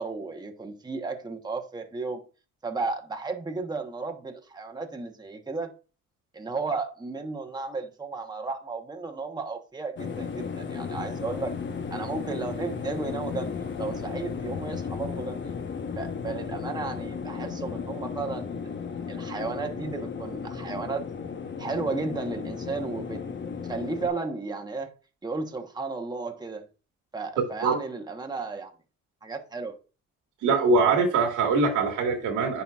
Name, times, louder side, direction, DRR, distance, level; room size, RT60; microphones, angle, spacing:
voice 1, 0.0-2.2 2.6-5.7 6.3-11.5 11.9-13.5 13.8-15.4 15.9-18.5 19.1-21.1 21.6-23.2 23.6-24.9 25.2-26.6 27.1-28.7 29.2-29.8, right 3 dB, 15° right, 1.0 m, -34 dB
sound 1, 10.0-24.1, left 6 dB, 40° left, 1.0 m, -34 dB
voice 2, 30.4-32.6, right 4 dB, 85° right, 1.8 m, -22 dB
10.0 x 4.1 x 2.3 m
cardioid pair, 90°, 30 cm